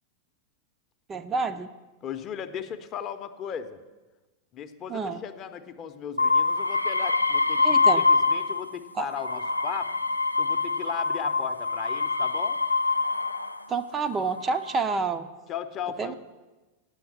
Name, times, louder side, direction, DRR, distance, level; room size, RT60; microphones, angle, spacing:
voice 1, 1.1-1.7 4.9-5.2 7.6-8.0 9.0-9.1 13.7-15.3 16.0-16.1, right 4 dB, 20° right, 10 dB, 0.4 m, -28 dB
voice 2, 2.0-3.8 4.5-9.9 10.4-12.6 15.5-16.1, left 8 dB, 35° left, 9 dB, 0.7 m, -37 dB
sound 1, 6.2-8.7 9.1-13.6 14.4-14.9, left 4 dB, 85° left, 0.4 m, -25 dB
9.0 x 7.2 x 7.2 m, 1.2 s
figure-of-eight pair, 90°, 0 cm